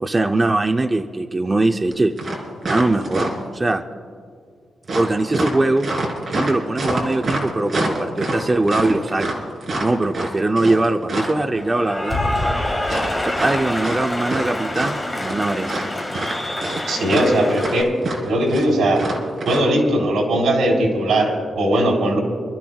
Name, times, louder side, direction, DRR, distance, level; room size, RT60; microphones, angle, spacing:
voice 1, 0.0-2.1 2.6-3.8 4.9-5.9 6.3-9.3 9.8-12.7 13.1-15.8, right 2 dB, 20° right, 6 dB, 0.5 m, -21 dB
sound 1, 1.9-2.0 2.2-3.6 4.9-11.4 12.8-14.5 14.7-15.4 15.7-19.6, right 2 dB, 40° right, 3.1 m, -26 dB
Cheering / Applause, 11.5-17.8, left 1 dB, 10° left, 1.7 m, -26 dB
voice 2, 16.9-17.9 18.2-19.0 19.4-22.2, right 1 dB, 80° right, 0 dB, 3.5 m, -19 dB
28.0 x 13.5 x 2.3 m, 2.2 s
wide cardioid pair, 165°, 0 cm